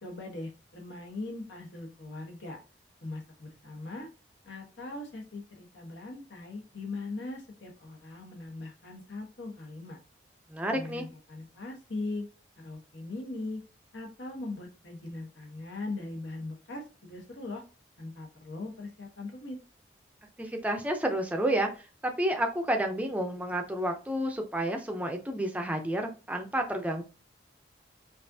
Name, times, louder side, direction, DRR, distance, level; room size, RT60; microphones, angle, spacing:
voice 1, 0.0-2.6 3.0-4.1 4.4-10.0 10.7-12.3 12.6-13.6 13.9-17.6 18.0-19.6, left 2 dB, 80° left, 1 dB, 1.3 m, -40 dB
voice 2, 10.5-11.0 20.4-27.0, right 1 dB, 10° right, 3 dB, 0.5 m, -30 dB
5.2 x 2.5 x 2.7 m, 0.33 s
head